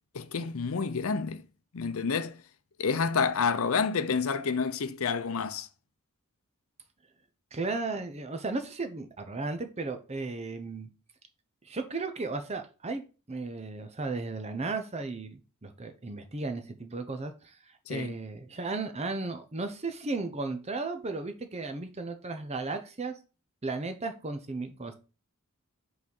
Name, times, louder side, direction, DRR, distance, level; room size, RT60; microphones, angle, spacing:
voice 1, 0.1-1.4 1.7-2.4 2.8-5.7 17.9-18.2, left 5 dB, 75° left, 0.6 m, -29 dB
voice 2, 7.5-10.9 11.6-13.0 13.3-17.6 17.9-23.1 23.6-24.9, right 3 dB, 30° right, 0.7 m, -35 dB
5.4 x 4.0 x 5.3 m
head